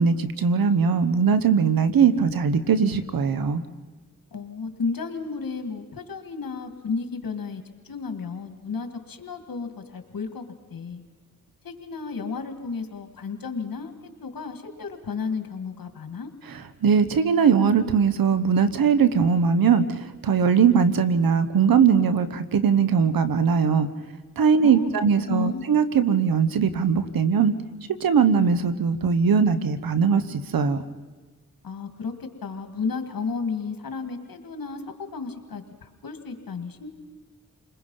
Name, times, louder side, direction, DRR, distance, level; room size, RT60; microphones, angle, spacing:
voice 1, 0.0-3.6 16.8-23.9 24.4-27.5 28.0-30.8, right 6 dB, 85° right, 12 dB, 1.2 m, -20 dB
voice 2, 4.3-10.4 10.7-11.0 11.6-16.3 24.6-24.9 25.3-25.7 31.6-36.9, left 4 dB, 80° left, 7 dB, 2.1 m, -33 dB
29.0 x 21.0 x 5.6 m, 1.3 s
cardioid pair, 45°, 34 cm